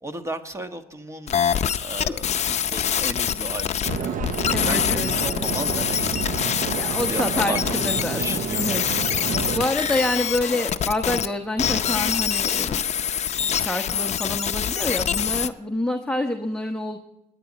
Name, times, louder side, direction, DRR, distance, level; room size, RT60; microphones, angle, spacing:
voice 1, 0.0-9.6, right 1 dB, 15° right, 7 dB, 1.4 m, -36 dB
sound 1, 1.3-11.3 11.6-15.5, left 8 dB, 40° left, 0.6 m, -25 dB
sound 2, 3.8-9.6, right 7 dB, 50° right, 0.8 m, -30 dB
voice 2, 4.5-5.1 6.7-8.8 9.5-13.1 13.5-17.0, left 1 dB, 5° left, 3 dB, 1.0 m, -27 dB
20.5 x 10.0 x 4.1 m, 0.89 s
cardioid pair, 110°, 17 cm